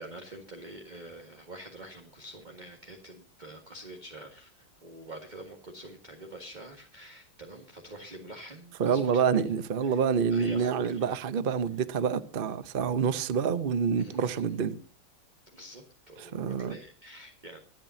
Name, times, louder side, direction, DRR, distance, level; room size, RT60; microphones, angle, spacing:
voice 1, 0.0-9.2 9.8-10.0 10.3-11.0 14.0-14.6 15.5-17.6, right 1 dB, 25° right, 1.6 m, -46 dB
voice 2, 8.8-14.8 16.3-16.7, right 6 dB, 60° right, 0.5 m, -27 dB
25.0 x 8.9 x 2.8 m
omnidirectional pair, 2.3 m